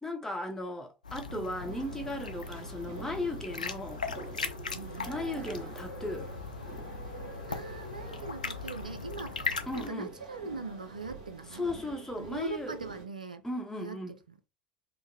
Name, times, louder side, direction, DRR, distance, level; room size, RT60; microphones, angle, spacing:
voice 1, 0.0-4.1 5.1-6.3 9.7-10.1 11.5-12.8 13.4-14.2, left 1 dB, 10° left, 0.8 m, -36 dB
sound 1, 1.0-9.9, left 4 dB, 80° left, 0.3 m, -39 dB
sound 2, 1.5-13.0, right 2 dB, 65° right, 1.1 m, -47 dB
voice 2, 4.7-5.2 7.5-11.7 12.2-13.4 13.8-14.0 14.3-14.4, right 3 dB, 80° right, 0.3 m, -41 dB
3.6 x 2.0 x 2.7 m
figure-of-eight pair, 70°, 4 cm